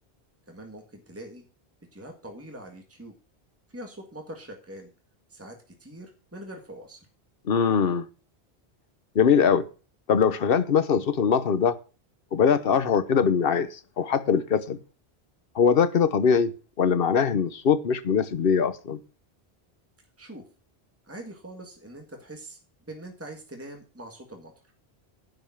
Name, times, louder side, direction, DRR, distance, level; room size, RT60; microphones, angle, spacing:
voice 1, 0.5-1.5 1.9-3.1 3.7-4.9 5.3-7.1 20.2-20.4 21.0-24.5, right 1 dB, 15° right, 1.8 m, -43 dB
voice 2, 7.4-8.1 9.1-9.7 10.1-11.8 12.3-14.8 15.5-16.5 16.8-19.0, left 6 dB, 60° left, 1.1 m, -22 dB
11.0 x 5.3 x 7.2 m
omnidirectional pair, 1.1 m